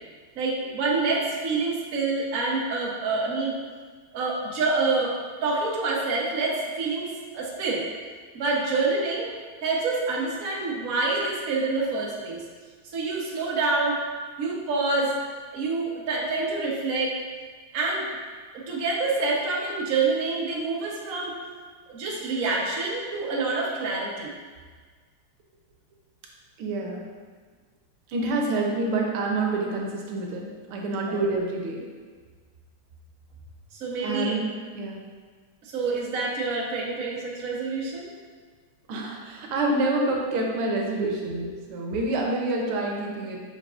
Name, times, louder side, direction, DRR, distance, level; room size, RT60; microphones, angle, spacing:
voice 1, 0.4-3.6 4.1-5.1 5.4-7.8 8.3-9.3 9.6-12.4 12.9-14.0 14.4-15.1 15.5-17.2 17.7-18.1 18.7-21.3 21.9-24.3 31.1-31.2 33.8-34.4 35.6-38.1, right 3 dB, 50° right, -3 dB, 1.1 m, -27 dB
voice 2, 26.6-27.0 28.1-31.9 34.0-34.4 34.7-35.0 38.9-43.4, right 2 dB, 80° right, 0 dB, 1.7 m, -27 dB
7.9 x 5.3 x 2.5 m, 1.5 s
omnidirectional pair, 2.4 m